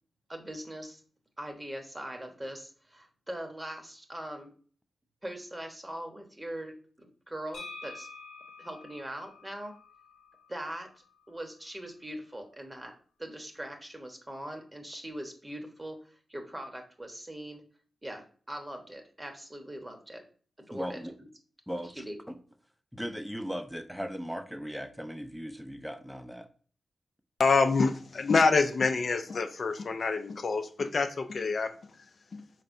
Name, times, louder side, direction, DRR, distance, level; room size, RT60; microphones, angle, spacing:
voice 1, 0.3-1.0 1.4-4.5 5.2-8.1 8.6-9.8 10.5-12.9 13.2-17.6 18.0-20.2 20.6-21.3 21.8-22.2, right 1 dB, 20° right, 4 dB, 1.0 m, -41 dB
sound 1, 7.5-11.3, left 3 dB, 85° left, 0.8 m, -48 dB
voice 2, 20.7-21.1 21.7-22.4 22.9-26.5, equal, ahead, 8 dB, 0.6 m, -38 dB
voice 3, 27.4-31.8 32.3-32.4, left 4 dB, 65° left, 7 dB, 0.4 m, -26 dB
4.1 x 3.2 x 2.6 m, 0.43 s
supercardioid pair, 40°, 0 cm